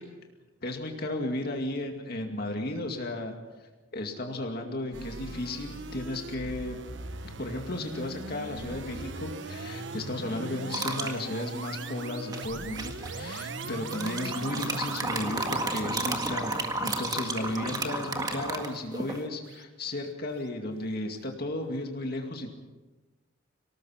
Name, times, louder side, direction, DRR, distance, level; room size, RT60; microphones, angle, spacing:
voice 1, 0.6-3.3 3.6-6.8 7.2-22.5, left 1 dB, 50° left, 3 dB, 2.3 m, -34 dB
sound 1, 4.9-20.1, right 3 dB, 65° right, 1.1 m, -40 dB
sound 2, 10.7-11.2 12.3-13.1 13.9-19.2, right 2 dB, 20° right, 1.7 m, -32 dB
24.5 x 18.5 x 5.9 m, 1.2 s
head